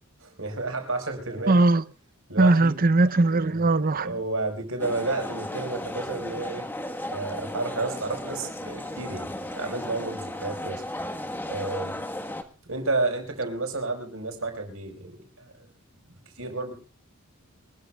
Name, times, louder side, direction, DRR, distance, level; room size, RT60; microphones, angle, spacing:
voice 1, 0.2-1.6 2.3-2.8 3.4-6.7 7.1-10.9 11.5-12.0 12.7-15.7 16.1-16.7, right 3 dB, 65° right, 4.9 m, -31 dB
voice 2, 1.5-1.8 2.4-4.1, right 2 dB, 40° right, 0.7 m, -20 dB
sound 1, 4.8-12.4, left 1 dB, 10° left, 1.4 m, -35 dB
25.0 x 13.5 x 2.4 m
head